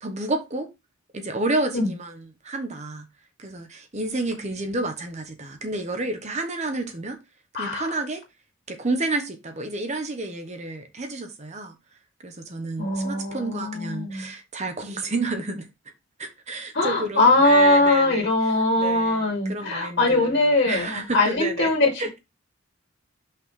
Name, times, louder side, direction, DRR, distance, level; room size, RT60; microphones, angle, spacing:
voice 1, 0.0-0.7 1.1-3.1 3.4-7.2 7.6-8.2 8.7-11.8 12.2-15.7 16.2-18.3 18.8-20.3 20.6-21.7 22.0-22.2, right 2 dB, 35° right, 1.0 m, -30 dB
voice 2, 7.5-7.9 12.8-14.3 16.7-21.9, left 2 dB, 55° left, 2.3 m, -21 dB
5.8 x 3.8 x 4.8 m
head